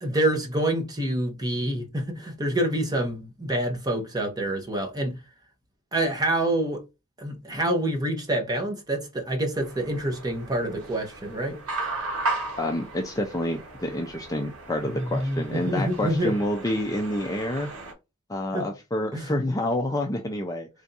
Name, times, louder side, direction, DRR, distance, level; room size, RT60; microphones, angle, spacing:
voice 1, 0.0-5.2 5.9-6.8 7.2-11.6 14.8-16.3 18.5-18.7 19.1-19.3, right 1 dB, 15° right, 0.9 m, -27 dB
sound 1, 9.6-17.9, right 2 dB, 75° right, 1.2 m, -36 dB
voice 2, 12.6-17.7 18.3-20.7, left 1 dB, 15° left, 0.4 m, -28 dB
3.4 x 2.6 x 3.9 m
head